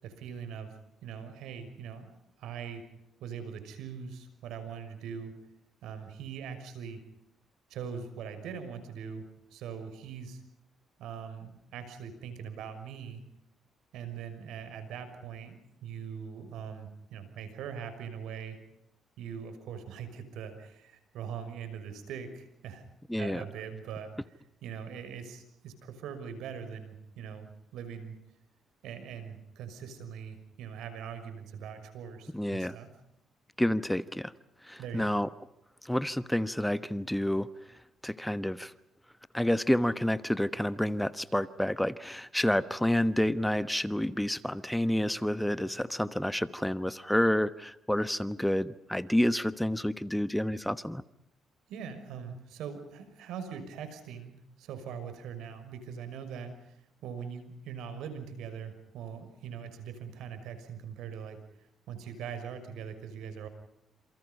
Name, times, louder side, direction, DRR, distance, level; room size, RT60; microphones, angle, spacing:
voice 1, 0.0-2.1 2.4-2.8 3.2-5.3 5.8-7.0 7.7-9.2 9.5-10.4 11.0-13.2 13.9-18.6 19.2-22.8 23.2-24.1 24.6-28.1 28.8-32.9 34.8-35.2 51.7-61.4 61.9-63.5, right 7 dB, 85° right, 9 dB, 6.0 m, -42 dB
voice 2, 23.1-23.4 32.3-32.7 33.6-34.3 34.6-35.3 35.8-37.5 38.0-38.7 39.3-51.0, left 1 dB, 5° left, 14 dB, 1.1 m, -29 dB
28.5 x 28.0 x 5.4 m, 0.81 s
cardioid pair, 90°, 0 cm